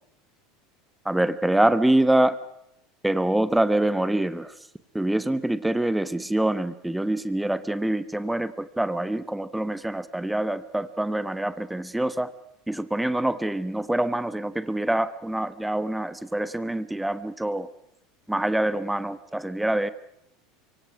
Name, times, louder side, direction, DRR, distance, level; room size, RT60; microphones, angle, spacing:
voice 1, 1.0-2.4 3.0-4.5 4.9-12.3 12.7-17.7 18.3-19.9, right 1 dB, 5° right, 14 dB, 1.1 m, -25 dB
26.5 x 23.5 x 6.1 m, 0.80 s
hypercardioid pair, 80°, 0 cm